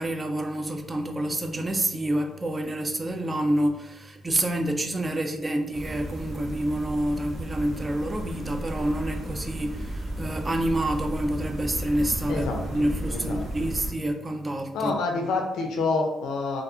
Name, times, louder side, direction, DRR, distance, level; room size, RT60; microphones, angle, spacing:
voice 1, 0.0-15.0, right 1 dB, 25° right, 0.3 m, -28 dB
sound 1, 5.7-13.9, right 1 dB, 45° right, 0.8 m, -34 dB
voice 2, 13.1-13.4 14.7-16.6, left 3 dB, 85° left, 0.4 m, -27 dB
2.4 x 2.3 x 2.6 m
cardioid pair, 90°, 0 cm